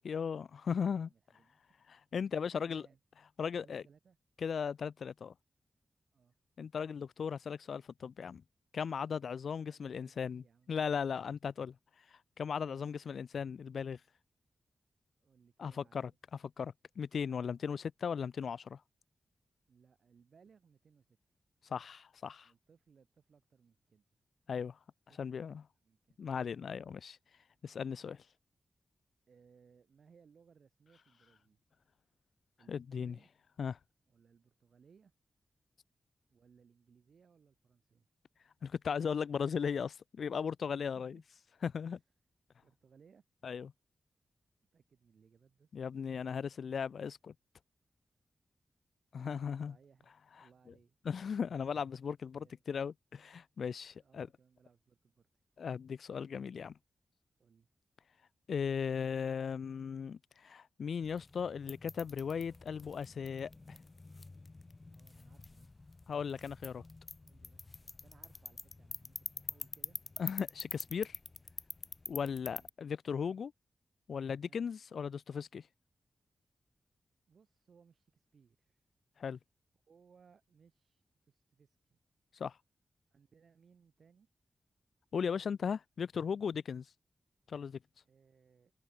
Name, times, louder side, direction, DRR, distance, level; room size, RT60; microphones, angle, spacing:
voice 1, 0.0-1.1 1.9-2.8 3.4-3.8 4.4-5.3 6.6-8.4 8.7-11.7 12.1-14.0 15.6-16.1 16.6-18.8 21.7-22.5 24.5-24.8 25.2-25.6 26.2-27.2 27.6-28.2 32.7-33.2 33.6-33.8 38.6-41.2 41.6-42.0 43.4-43.7 45.7-47.3 49.1-49.7 51.1-54.3 55.6-56.7 58.5-63.8 66.1-66.8 70.2-71.2 72.1-73.5 74.1-75.6 79.2-79.4 82.3-82.6 85.1-86.9 87.5-87.8, left 6 dB, 75° left, 0.3 m, -37 dB
voice 2, 0.8-1.8 2.2-3.0 3.6-4.2 6.1-6.3 9.6-10.8 12.6-13.0 15.2-16.2 17.2-17.7 19.7-21.2 22.4-24.0 25.1-25.4 25.8-26.2 29.3-31.6 32.6-33.3 34.1-35.1 36.3-38.1 40.7-41.2 41.9-42.0 42.6-43.2 44.7-45.9 49.1-51.0 52.3-52.6 54.0-55.3 57.4-57.7 64.9-65.7 67.2-70.0 72.4-72.7 74.4-74.6 77.3-78.9 79.9-82.0 83.1-84.3 88.0-88.7, right 6 dB, 65° right, 6.7 m, -66 dB
sound 1, 61.0-72.7, left 3 dB, 25° left, 1.8 m, -47 dB
wide cardioid pair, 145°, 0 cm